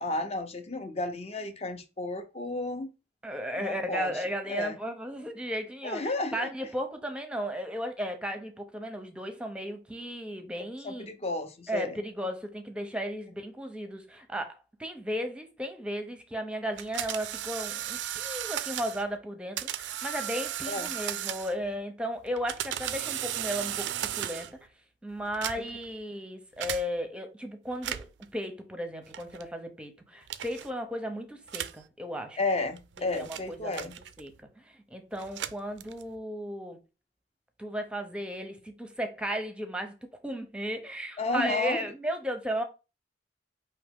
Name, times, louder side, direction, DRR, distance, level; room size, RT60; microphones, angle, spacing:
voice 1, 0.0-2.9 3.6-4.8 5.8-6.5 10.8-12.0 20.7-20.9 25.6-25.7 32.4-33.9 41.2-41.8, left 2 dB, 35° left, 0.7 m, -32 dB
voice 2, 3.2-11.1 11.7-24.5 25.0-28.1 28.3-32.4 33.0-33.9 34.2-34.6 34.9-36.8 37.6-40.0 40.2-42.6, equal, 5° right, 0.7 m, -35 dB
sound 1, 16.8-19.0 19.6-21.7 22.3-24.6 25.3-25.9 26.6-26.8 27.7-28.2 29.1-29.5 30.3-30.7 31.5-31.8 32.6-34.4 35.1-36.2, right 11 dB, 75° right, 0.4 m, -35 dB
4.8 x 2.9 x 3.5 m
head